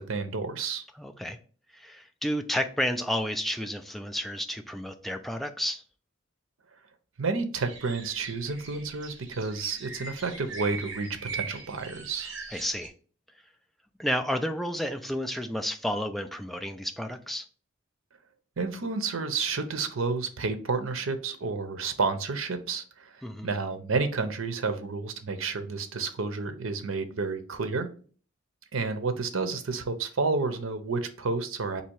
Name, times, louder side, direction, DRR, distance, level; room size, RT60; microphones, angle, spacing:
voice 1, 0.0-0.8 7.2-12.3 18.6-27.9 28.7-31.8, right 4 dB, 80° right, 0.7 m, -30 dB
voice 2, 1.0-1.4 1.7-5.8 12.5-12.9 14.0-17.5 23.2-23.5, equal, ahead, 0.3 m, -31 dB
sound 1, 7.6-12.9, right 4 dB, 60° right, 1.1 m, -41 dB
4.1 x 2.8 x 4.5 m
head